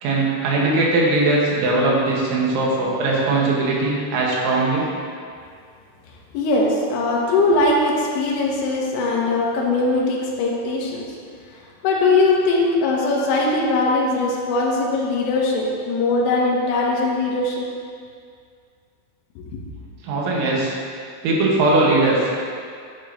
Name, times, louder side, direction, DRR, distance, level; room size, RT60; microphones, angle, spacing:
voice 1, 0.0-4.9 20.0-20.7 21.2-22.3, right 2 dB, 80° right, -4 dB, 3.8 m, -20 dB
voice 2, 6.3-11.0 11.8-17.7, left 2 dB, 85° left, -2 dB, 3.6 m, -20 dB
11.5 x 8.7 x 3.0 m, 2.2 s
omnidirectional pair, 5.4 m